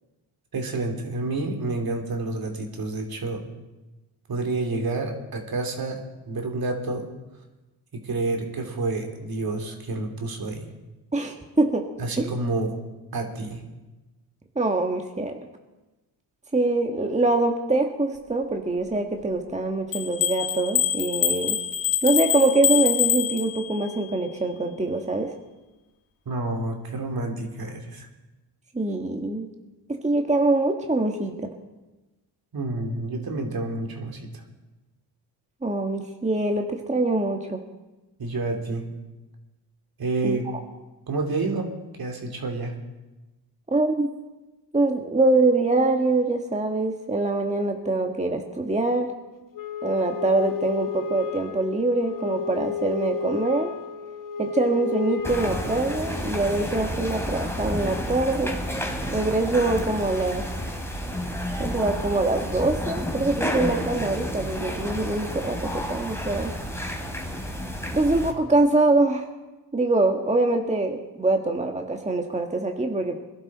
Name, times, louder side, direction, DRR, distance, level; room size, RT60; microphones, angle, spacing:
voice 1, 0.5-3.4 4.3-7.1 7.9-10.6 12.0-12.8 13.1-13.6 26.3-28.1 32.5-34.3 38.2-38.9 40.0-40.5 41.1-41.7 42.0-42.8, right 2 dB, 55° right, 3 dB, 3.0 m, -29 dB
voice 2, 11.1-11.8 12.2-12.3 14.5-15.4 16.5-21.6 22.0-25.3 28.7-29.5 29.9-31.5 35.6-37.6 40.2-40.4 43.7-44.1 44.7-49.1 49.8-53.7 54.4-58.6 59.1-60.4 61.6-66.5 67.9-69.2 69.7-73.2, right 2 dB, 15° right, 3 dB, 1.6 m, -24 dB
sound 1, 19.9-23.9, left 10 dB, 85° left, 1.6 m, -25 dB
Wind instrument woodwind instrument, 49.5-56.3, left 6 dB, 45° left, 1.1 m, -32 dB
sound 2, 55.2-68.3, equal, 5° left, 3.0 m, -30 dB
22.0 x 11.5 x 4.2 m, 1.1 s
cardioid pair, 70°, 44 cm